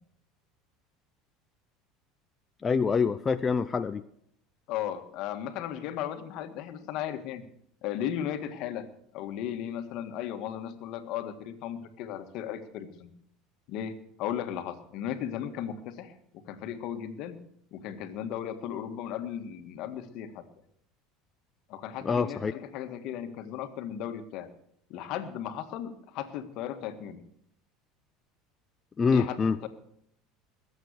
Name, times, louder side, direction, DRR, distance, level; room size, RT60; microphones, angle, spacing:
voice 1, 2.6-4.0 22.0-22.5 29.0-29.6, left 5 dB, 25° left, 10 dB, 0.5 m, -25 dB
voice 2, 4.7-7.4 7.8-8.9 9.1-13.1 13.7-16.2 16.5-17.4 17.7-20.4 21.7-24.5 24.9-27.2 29.1-29.7, left 10 dB, 60° left, 9 dB, 1.7 m, -36 dB
20.5 x 8.1 x 6.7 m, 0.71 s
supercardioid pair, 115°, 0 cm